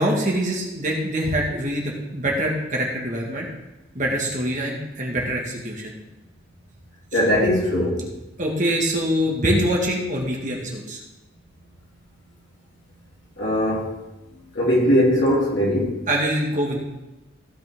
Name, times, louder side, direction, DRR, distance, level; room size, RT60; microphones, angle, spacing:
voice 1, 0.0-3.5 4.0-5.9 7.1-7.2 8.4-11.0 16.1-16.8, equal, 40° right, 1.9 m, -24 dB
voice 2, 7.1-8.0 13.4-13.9 14.5-16.0, equal, 60° left, 3.4 m, -20 dB
15.5 x 5.9 x 3.7 m
head